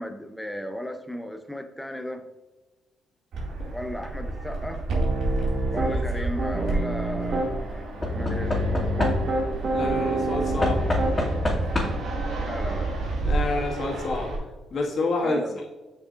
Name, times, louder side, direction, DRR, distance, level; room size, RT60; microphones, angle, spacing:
voice 1, 0.0-2.2 3.7-4.8 5.7-8.6 12.4-13.0 15.2-15.6, left 1 dB, 5° left, 7 dB, 0.6 m, -35 dB
Fixed-wing aircraft airplane, 3.3-14.4, right 2 dB, 75° right, 2.1 m, -30 dB
Piano, 4.9-6.0 6.4-7.5 8.2-11.4, right 2 dB, 50° right, 1.2 m, -28 dB
Knock / Wood, 5.8-6.3 8.0-9.6 10.6-12.2 13.2-13.3 13.6-13.7, left 1 dB, 20° left, 2.2 m, -27 dB
voice 2, 9.7-10.8 13.2-14.3 14.7-15.4, left 3 dB, 55° left, -1 dB, 1.7 m, -28 dB
7.5 x 6.2 x 2.5 m, 1.2 s
cardioid pair, 90°, 0 cm